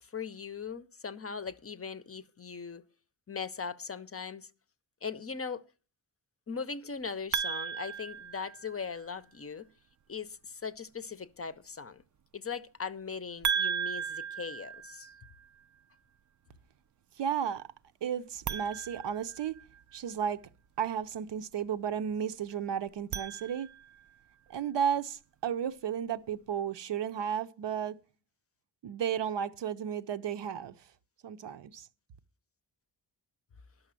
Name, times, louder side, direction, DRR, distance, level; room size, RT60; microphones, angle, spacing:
voice 1, 0.0-2.8 3.3-4.5 5.0-5.6 6.5-9.7 10.1-12.0 12.3-15.1, left 5 dB, 35° left, 0.6 m, -39 dB
sound 1, 7.3-9.0 13.4-15.5 18.4-20.0 22.9-24.1, right 7 dB, 45° right, 0.5 m, -36 dB
voice 2, 17.2-17.7 18.0-19.5 19.9-20.4 20.8-23.7 24.5-28.0 28.8-30.8 31.2-31.9, right 8 dB, 70° right, 0.8 m, -33 dB
11.5 x 6.4 x 7.5 m
wide cardioid pair, 130°, 43 cm